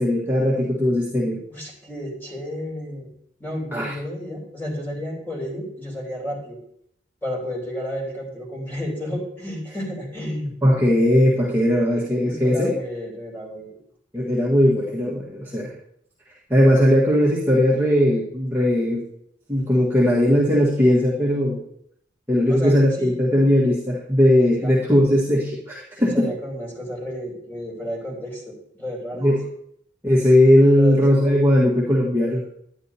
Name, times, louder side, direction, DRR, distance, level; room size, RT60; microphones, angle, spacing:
voice 1, 0.0-1.4 3.7-3.9 10.6-12.8 14.1-15.7 16.5-19.1 19.5-21.6 22.3-26.3 29.2-29.4 30.0-32.4, left 1 dB, 10° right, -6 dB, 1.4 m, -18 dB
voice 2, 1.5-3.1 3.4-6.6 7.2-10.5 12.2-13.7 22.5-23.1 24.6-25.0 26.0-29.3 30.8-31.0, equal, 10° left, -3 dB, 3.1 m, -32 dB
11.0 x 9.8 x 2.7 m, 0.70 s
head